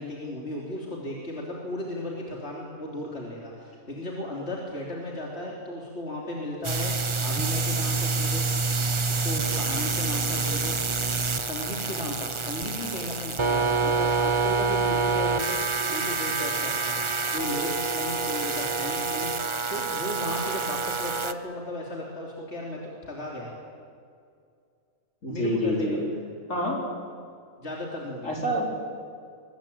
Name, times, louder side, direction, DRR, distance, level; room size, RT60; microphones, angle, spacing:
voice 1, 0.0-8.5 9.1-10.8 11.4-15.6 15.9-23.6 25.3-26.2 27.6-28.3, left 1 dB, 50° left, -2 dB, 3.7 m, -35 dB
sound 1, 6.6-21.3, right 4 dB, 25° right, 0.8 m, -27 dB
voice 2, 25.2-26.0 26.5-26.8 28.2-28.7, equal, 70° left, -1 dB, 4.8 m, -27 dB
23.5 x 20.5 x 8.8 m, 2.3 s
omnidirectional pair, 1.4 m